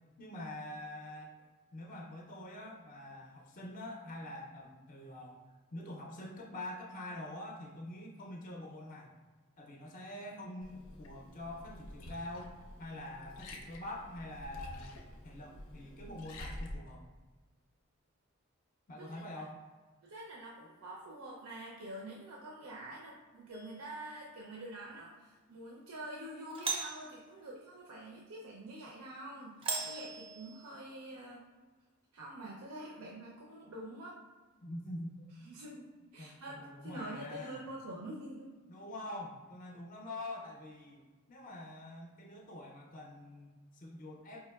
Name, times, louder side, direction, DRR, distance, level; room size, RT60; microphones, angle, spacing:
voice 1, 0.2-1.4 1.7-5.4 5.7-9.1 9.6-15.0 15.2-17.1 18.9-19.6 34.6-35.3 36.2-37.6 38.7-41.0 41.3-44.5, left 1 dB, 40° left, -1 dB, 0.4 m, -45 dB
Liquid, 10.6-16.7, left 1 dB, 90° left, 0.5 m, -48 dB
voice 2, 20.0-31.4 32.1-34.2 35.4-38.5, right 1 dB, 85° right, -3 dB, 0.5 m, -46 dB
Doorbell, 23.5-24.0 26.5-27.1 29.6-30.8, right 4 dB, 25° right, 0.4 m, -38 dB
4.6 x 2.9 x 2.2 m, 1.3 s
head